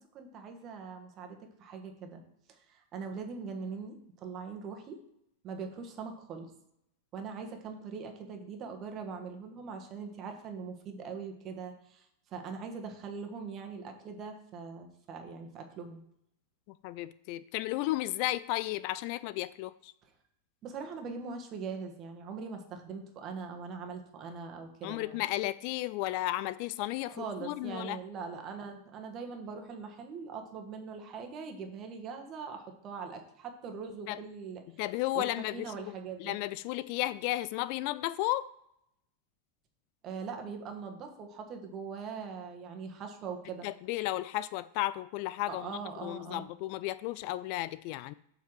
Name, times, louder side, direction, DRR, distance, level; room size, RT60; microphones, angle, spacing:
voice 1, 0.0-2.2 2.5-5.0 5.4-6.5 7.1-16.0 20.6-25.2 27.1-34.6 35.1-36.3 40.0-43.7 45.5-46.5, right 5 dB, 30° right, 4 dB, 1.7 m, -42 dB
voice 2, 16.8-19.9 24.8-28.0 34.1-34.2 34.8-35.9 36.2-38.5 43.6-48.1, left 16 dB, 45° left, 17 dB, 0.3 m, -34 dB
7.6 x 5.6 x 6.3 m, 0.77 s
figure-of-eight pair, 90°, 0 cm